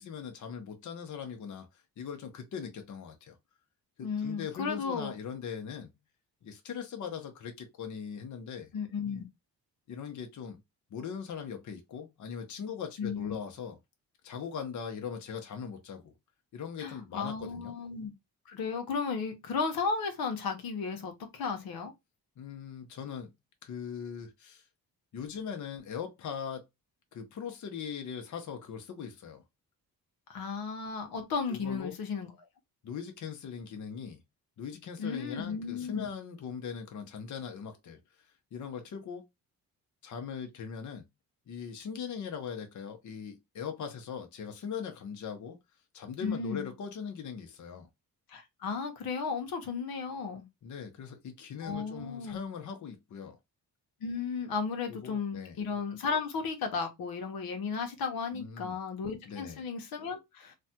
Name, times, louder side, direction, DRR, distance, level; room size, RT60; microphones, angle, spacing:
voice 1, 0.0-3.4 4.0-5.9 6.4-8.7 9.9-10.6 10.9-13.8 14.2-16.1 16.5-17.7 22.4-23.3 23.6-24.6 25.1-26.6 27.1-29.4 31.5-31.9 32.8-34.2 34.6-39.2 40.0-41.1 41.5-45.6 45.9-47.9 50.6-53.4 54.9-55.6 58.3-58.8 59.3-59.6, left 7 dB, 55° left, 0.8 m, -40 dB
voice 2, 4.0-5.1 8.7-9.2 13.0-13.4 16.8-18.1 18.5-21.9 30.3-32.3 35.0-36.1 46.2-46.7 48.3-50.5 51.6-52.4 54.0-60.5, left 5 dB, 75° left, 0.9 m, -34 dB
3.2 x 2.2 x 2.8 m
cardioid pair, 85°, 36 cm